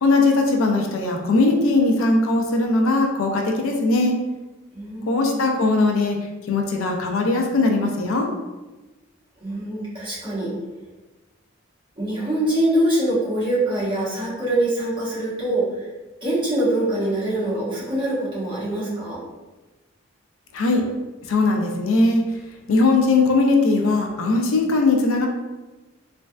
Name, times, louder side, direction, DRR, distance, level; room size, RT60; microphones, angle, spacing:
voice 1, 0.0-4.2 5.1-6.2 6.5-8.3 20.5-20.8 21.3-22.2 22.7-25.3, left 3 dB, 75° left, 3 dB, 0.4 m, -19 dB
voice 2, 4.7-5.4 9.4-10.5 12.0-15.9 16.2-19.2, right 1 dB, 25° right, -9 dB, 1.0 m, -24 dB
3.1 x 2.5 x 2.2 m, 1.1 s
head